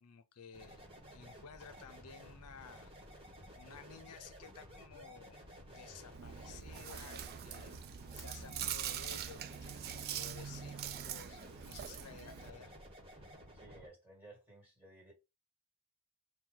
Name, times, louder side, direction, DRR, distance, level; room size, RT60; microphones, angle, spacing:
voice 1, 0.0-2.9 3.6-5.4 5.7-11.4 11.7-12.7, left 6 dB, 80° left, 0.6 m, -54 dB
sound 1, 0.5-13.9, equal, 25° right, 1.3 m, -54 dB
Chewing mastication, 6.1-12.5, right 10 dB, 45° right, 0.3 m, -43 dB
voice 2, 13.5-15.1, right 2 dB, 10° right, 1.8 m, -57 dB
4.5 x 2.3 x 3.7 m
head